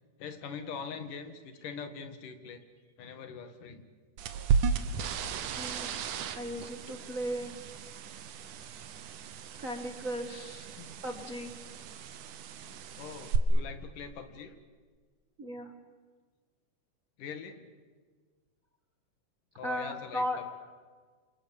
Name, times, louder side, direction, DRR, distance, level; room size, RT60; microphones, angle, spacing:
voice 1, 0.2-2.6 3.0-3.9 10.8-10.9 12.6-14.6 17.2-17.6 19.5-20.5, left 6 dB, 75° left, 8 dB, 3.4 m, -43 dB
sound 1, 4.2-13.4, right 6 dB, 75° right, 2.7 m, -35 dB
voice 2, 5.2-5.9 6.3-7.7 9.6-10.7 11.0-11.5 15.4-15.7 19.6-20.4, equal, 35° right, 4 dB, 1.4 m, -37 dB
29.0 x 27.0 x 7.1 m, 1.5 s
omnidirectional pair, 3.7 m